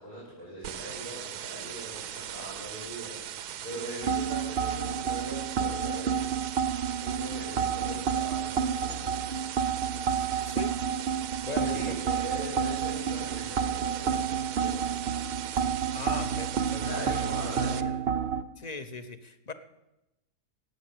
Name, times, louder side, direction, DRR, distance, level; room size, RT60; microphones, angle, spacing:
voice 1, 0.0-6.4 6.9-9.2 11.6-14.8 16.8-18.1, equal, 75° left, -8 dB, 5.8 m, -41 dB
sound 1, 0.6-17.8, right 10 dB, 75° right, 1.2 m, -39 dB
sound 2, 4.0-18.4, right 7 dB, 55° right, 0.7 m, -30 dB
voice 2, 10.4-10.8 11.4-11.9 15.9-16.8 18.6-19.5, left 4 dB, 35° left, 10 dB, 0.8 m, -39 dB
17.5 x 8.9 x 8.0 m, 0.95 s
omnidirectional pair, 1.7 m